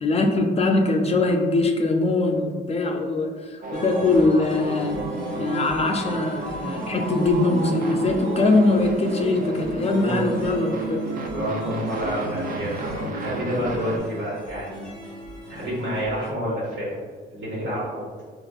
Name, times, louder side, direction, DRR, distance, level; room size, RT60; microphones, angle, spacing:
voice 1, 0.0-5.0 5.4-11.0, left 2 dB, 30° left, 2 dB, 0.4 m, -22 dB
sound 1, 3.6-14.0, right 2 dB, 45° right, 0.4 m, -31 dB
sound 2, 3.7-16.3, equal, 5° left, 0.9 m, -36 dB
voice 2, 11.3-14.8 15.5-16.9 17.3-17.9, equal, 70° right, -7 dB, 1.5 m, -28 dB
3.2 x 2.5 x 2.3 m, 1.5 s
cardioid pair, 90°, 20 cm